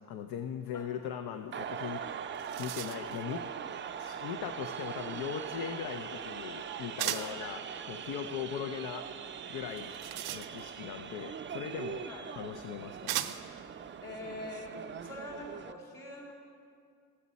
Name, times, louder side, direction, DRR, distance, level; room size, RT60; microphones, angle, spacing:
voice 1, 0.0-3.4 4.0-9.1 9.5-9.9 10.3-12.0 12.4-13.2, left 8 dB, 80° left, 7 dB, 0.6 m, -39 dB
sound 1, 1.5-15.7, right 7 dB, 30° right, 0.4 m, -41 dB
sound 2, 1.9-2.0 2.2-3.2 7.0-7.4 9.7-10.9 12.0-12.1 13.1-13.6, right 13 dB, 85° right, 0.6 m, -37 dB
voice 2, 7.0-7.4 12.0-12.3 14.0-14.7 15.0-16.3, left 2 dB, 60° left, -5 dB, 2.8 m, -44 dB
12.5 x 8.5 x 4.1 m, 2.3 s
cardioid pair, 80°, 37 cm